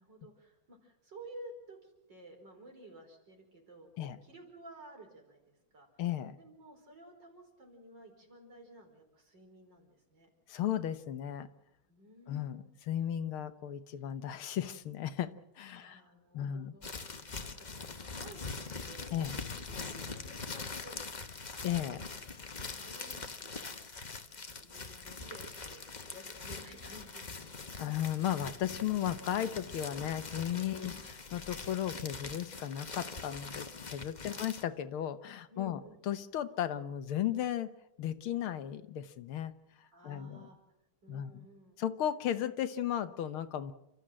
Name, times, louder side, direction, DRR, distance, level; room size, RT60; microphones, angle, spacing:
voice 1, 0.0-6.0 6.3-10.3 11.9-12.6 15.7-17.0 17.2-19.1 19.7-21.1 21.4-21.7 22.7-23.7 24.1-27.5 30.7-31.1 34.2-34.5 35.5-36.0 39.9-40.6 41.0-41.8, right 1 dB, 55° right, 2 dB, 5.4 m, -54 dB
voice 2, 6.0-6.4 10.5-11.5 12.3-15.3 15.6-16.0 16.3-16.8 19.1-19.3 21.6-22.0 27.8-37.7 38.0-39.5 39.8-40.5 41.1-41.5 41.8-43.7, left 10 dB, 85° left, 11 dB, 1.9 m, -35 dB
sound 1, 16.8-34.6, left 4 dB, 30° left, 0.9 m, -43 dB
29.5 x 13.5 x 7.6 m, 0.90 s
omnidirectional pair, 2.3 m